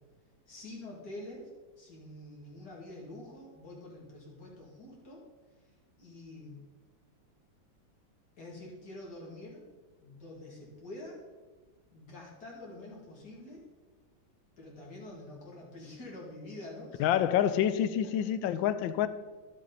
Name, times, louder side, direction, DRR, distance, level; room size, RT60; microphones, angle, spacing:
voice 1, 0.5-1.5 1.8-5.2 6.0-6.6 8.4-9.6 10.0-11.2 11.9-13.6 14.6-17.1, left 1 dB, 60° left, 2.9 m, -46 dB
voice 2, 17.0-19.1, left 10 dB, 85° left, 1.3 m, -27 dB
11.0 x 7.5 x 4.0 m
omnidirectional pair, 2.1 m